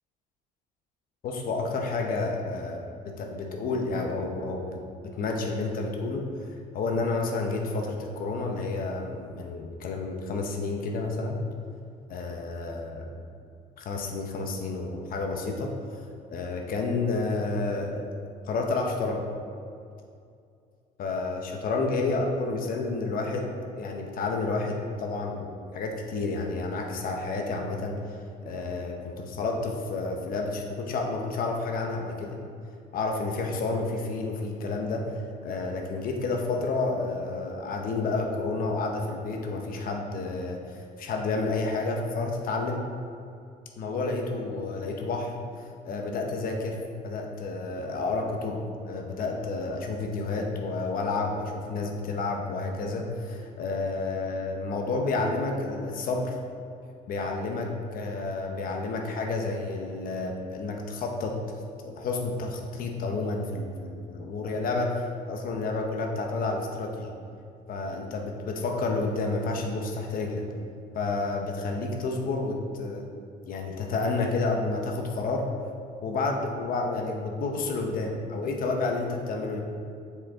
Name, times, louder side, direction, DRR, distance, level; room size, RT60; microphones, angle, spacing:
voice 1, 1.2-4.8 5.2-6.3 6.7-11.4 12.1-13.1 13.8-16.0 16.3-18.0 18.5-19.2 21.0-27.9 28.4-32.4 32.9-35.1 35.4-42.8 43.8-46.8 47.0-56.4 57.1-61.3 61.8-67.1 67.7-70.4 70.9-73.0 73.5-75.5 76.0-79.6, left 3 dB, 55° left, 1 dB, 0.8 m, -30 dB
6.8 x 5.1 x 3.6 m, 2.4 s
cardioid pair, 110°, 17 cm